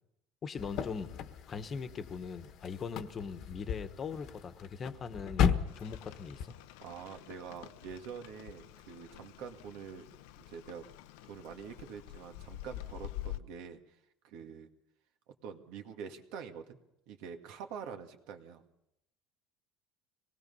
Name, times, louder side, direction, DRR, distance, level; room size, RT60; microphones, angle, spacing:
voice 1, 0.4-1.1 1.5-6.5, left 5 dB, 30° left, 10 dB, 1.3 m, -40 dB
sound 1, 0.6-6.5, left 8 dB, 55° left, 1.2 m, -35 dB
Rain, 5.7-13.4, left 14 dB, 90° left, 0.7 m, -47 dB
voice 2, 6.8-10.1 10.4-10.8 11.2-14.0 14.2-14.7 15.4-16.8 17.1-18.6, right 7 dB, 75° right, 5 dB, 2.0 m, -46 dB
24.5 x 19.0 x 5.6 m, 0.83 s
cardioid pair, 140°, 0 cm